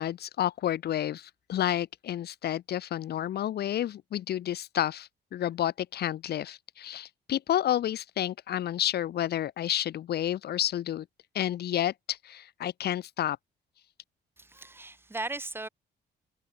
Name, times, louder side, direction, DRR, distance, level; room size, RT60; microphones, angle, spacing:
voice 1, 0.0-11.1 11.3-13.4, left 11 dB, 60° left, 2.4 m, -30 dB
voice 2, 14.4-15.7, right 2 dB, 10° right, 1.9 m, -37 dB
cardioid pair, 165°, 18 cm